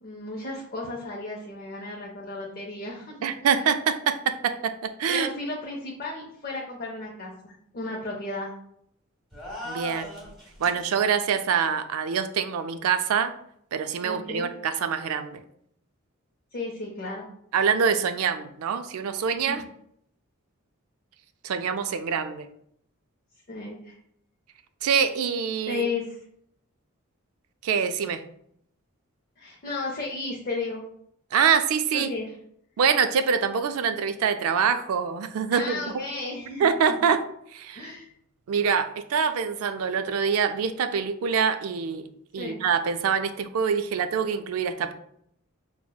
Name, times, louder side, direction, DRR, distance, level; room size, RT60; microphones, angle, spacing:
voice 1, 0.0-3.6 5.1-8.5 14.0-14.5 16.5-17.3 19.5-19.6 23.5-24.0 25.7-26.2 29.4-30.8 31.9-32.3 35.5-36.7 37.8-38.1 42.4-42.6, left 3 dB, 40° left, -2 dB, 0.5 m, -34 dB
voice 2, 3.2-5.3 9.6-10.2 10.6-13.3 13.7-15.4 17.5-19.6 21.4-22.5 24.8-25.9 27.6-28.2 31.3-32.1 32.8-36.0 36.6-37.2 37.5-37.9 38.5-42.1 42.3-44.9, right 6 dB, 75° right, 10 dB, 0.3 m, -25 dB
sound 1, 9.3-10.9, equal, ahead, 1.1 m, -38 dB
5.9 x 2.0 x 2.2 m, 0.70 s
head